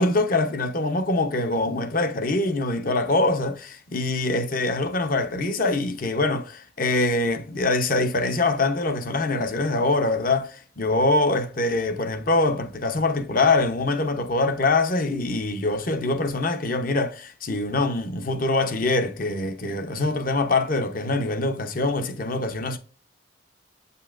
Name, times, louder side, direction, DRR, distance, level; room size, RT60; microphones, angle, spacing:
voice 1, 0.0-22.8, left 2 dB, 45° left, 0.8 m, -24 dB
7.9 x 5.5 x 2.5 m
head